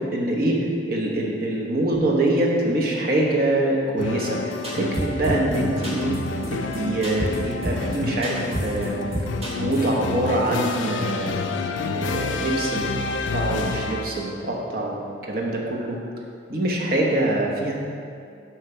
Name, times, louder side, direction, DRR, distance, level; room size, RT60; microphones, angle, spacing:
voice 1, 0.1-4.4 4.7-6.1 6.5-9.0 9.5-11.5 11.9-12.9 13.3-15.0 15.3-16.0 16.5-17.7, right 1 dB, 50° right, -2 dB, 0.9 m, -24 dB
sound 1, 4.0-14.4, left 3 dB, 80° left, 0.4 m, -29 dB
sound 2, 4.6-5.6 5.8-6.2 6.4-6.5 6.7-6.8 7.0-7.4 7.6-8.0 8.2-8.9 9.1-9.9, right 1 dB, 35° right, 1.5 m, -28 dB
6.5 x 3.2 x 5.7 m, 2.4 s
head